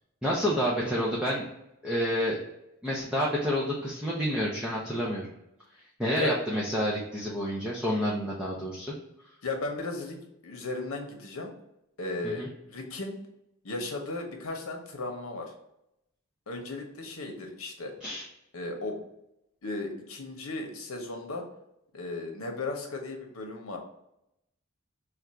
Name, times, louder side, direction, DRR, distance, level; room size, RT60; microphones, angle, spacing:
voice 1, 0.2-1.4 1.8-2.4 2.8-5.3 6.0-8.9 12.2-12.5 18.0-18.3, equal, 5° right, -6 dB, 0.6 m, -29 dB
voice 2, 9.4-11.5 12.0-13.2 13.6-15.5 16.5-17.9 18.5-19.0 19.6-21.5 21.9-23.8, left 2 dB, 85° left, 2 dB, 0.9 m, -36 dB
3.4 x 2.5 x 4.4 m, 0.83 s
head